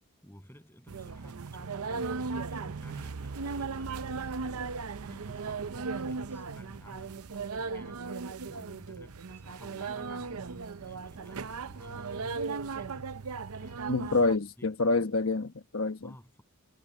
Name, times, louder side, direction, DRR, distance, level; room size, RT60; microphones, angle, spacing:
voice 1, 0.2-4.7 5.0-14.3 14.6-14.7 16.0-16.4, equal, 10° left, 7.9 m, -53 dB
sound 1, 0.9-14.4, right 4 dB, 80° right, 0.7 m, -37 dB
voice 2, 13.9-16.1, left 3 dB, 65° left, 1.1 m, -27 dB
head